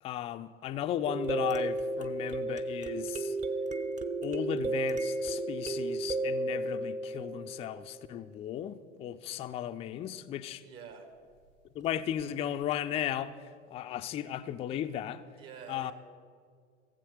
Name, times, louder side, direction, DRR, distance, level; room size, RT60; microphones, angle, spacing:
voice 1, 0.0-3.4 4.2-10.6 11.7-15.3 15.7-15.9, left 11 dB, 20° left, 0.4 m, -36 dB
sound 1, 1.1-8.0 12.2-12.3 12.7-12.8, right 2 dB, 20° right, 0.7 m, -33 dB
voice 2, 10.6-11.1 15.3-15.9, right 7 dB, 55° right, 2.0 m, -47 dB
16.0 x 7.7 x 6.5 m
figure-of-eight pair, 75°, 35 cm